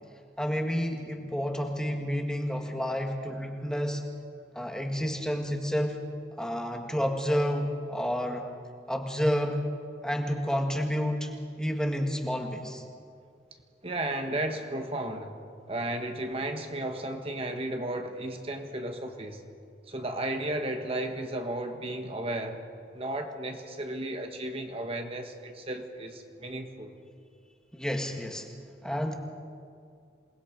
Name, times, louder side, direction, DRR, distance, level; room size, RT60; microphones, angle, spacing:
voice 1, 0.4-4.0 4.5-6.0 6.4-8.5 8.9-9.6 10.0-11.3 11.6-12.8 27.7-28.5 28.8-29.1, equal, 5° left, 3 dB, 1.6 m, -30 dB
voice 2, 13.8-15.3 15.7-19.4 19.9-22.6 22.9-26.9, right 1 dB, 35° right, 4 dB, 1.4 m, -34 dB
27.5 x 20.0 x 5.1 m, 2.3 s
head